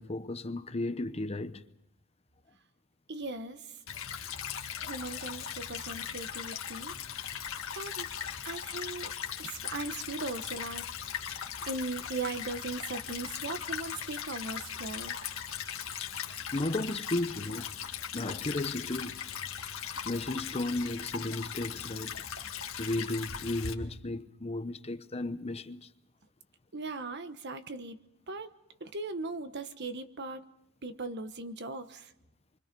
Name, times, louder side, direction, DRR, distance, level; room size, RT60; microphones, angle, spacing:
voice 1, 0.0-1.6 16.5-17.7 18.1-19.2 20.0-22.2 22.8-25.9, left 2 dB, 30° left, 0.8 m, -34 dB
voice 2, 3.1-3.6 4.8-6.9 7.7-8.1 8.4-9.1 9.4-10.8 11.7-15.2 15.6-16.0 26.7-28.0 28.3-28.5 28.8-30.4 30.8-32.1, right 3 dB, 55° right, 1.2 m, -38 dB
Stream / Trickle dribble, 3.9-23.7, left 8 dB, 70° left, 1.9 m, -39 dB
29.0 x 24.5 x 5.4 m
head